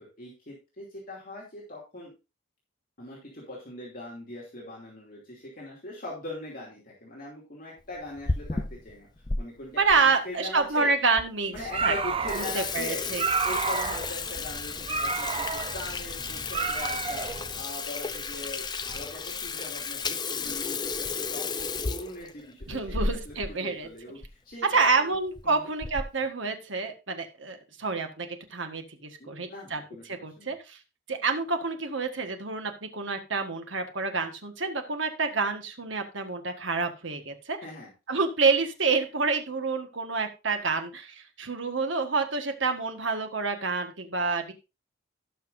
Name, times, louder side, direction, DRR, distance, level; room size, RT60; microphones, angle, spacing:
voice 1, 0.0-2.1 3.0-8.6 8.8-9.1 9.4-10.9 11.5-13.0 13.4-17.3 17.5-23.0 23.2-23.3 23.6-25.1 25.4-25.7 29.2-30.5 37.6-37.9, left 1 dB, 45° left, -4 dB, 2.7 m, -41 dB
Water tap faucet / Sink (filling or washing), 8.0-9.4 9.9-10.0 10.7-10.8 11.2-11.3 11.6-11.8 12.1-23.5 23.8-23.9 24.2-24.3 25.1-25.4 25.8-26.2, left 4 dB, 20° left, 0.6 m, -33 dB
voice 2, 9.8-11.9 12.4-13.2 22.7-23.9 24.7-29.8 30.1-30.8 31.1-37.6 38.1-44.5, right 4 dB, 70° right, 6 dB, 1.6 m, -28 dB
sound 1, 11.5-17.6, right 4 dB, 30° right, 0.6 m, -31 dB
17.0 x 5.9 x 2.6 m, 0.27 s
head